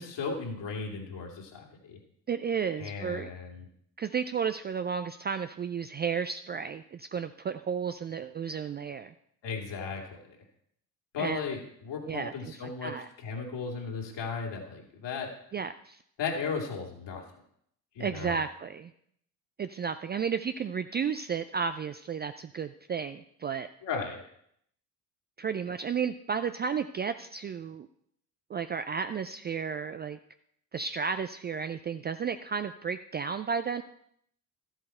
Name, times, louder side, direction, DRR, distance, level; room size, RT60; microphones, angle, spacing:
voice 1, 0.0-2.0 2.8-3.7 9.4-10.4 11.1-12.9 13.2-15.3 16.2-17.2 17.9-18.4 23.8-24.2, left 5 dB, 55° left, 1 dB, 2.9 m, -36 dB
voice 2, 2.3-3.3 4.0-9.1 11.2-11.4 12.1-12.5 12.8-13.1 15.5-16.0 18.0-18.9 19.6-23.7 25.4-27.9 28.5-30.2 30.7-33.8, right 6 dB, 25° right, 10 dB, 0.4 m, -33 dB
13.0 x 7.9 x 4.4 m, 0.70 s
hypercardioid pair, 55°, 50 cm